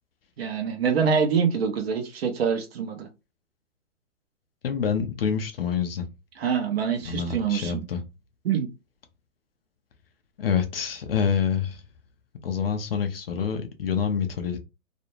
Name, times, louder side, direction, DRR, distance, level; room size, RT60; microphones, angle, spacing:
voice 1, 0.4-3.1 6.4-7.8 8.4-8.7, right 6 dB, 45° right, 0.7 m, -25 dB
voice 2, 4.6-6.1 7.0-8.0 10.4-11.8 12.4-14.6, left 7 dB, 45° left, 0.5 m, -27 dB
2.5 x 2.1 x 2.9 m
hypercardioid pair, 150°, 43 cm